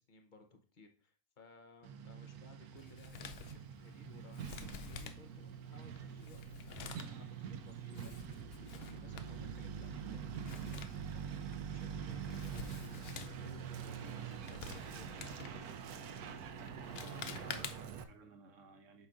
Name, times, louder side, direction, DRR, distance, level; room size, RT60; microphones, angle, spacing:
voice 1, 0.0-12.8 13.1-15.6 17.5-17.6, left 3 dB, 40° left, 5 dB, 0.8 m, -60 dB
Truck, 1.8-18.0, right 7 dB, 70° right, 1.2 m, -45 dB
Male speech man speaking, 2.8-18.1, left 7 dB, 75° left, 0.5 m, -51 dB
voice 2, 16.9-19.1, right 4 dB, 55° right, 5 dB, 1.3 m, -58 dB
8.3 x 5.7 x 2.5 m, 0.41 s
omnidirectional pair, 1.7 m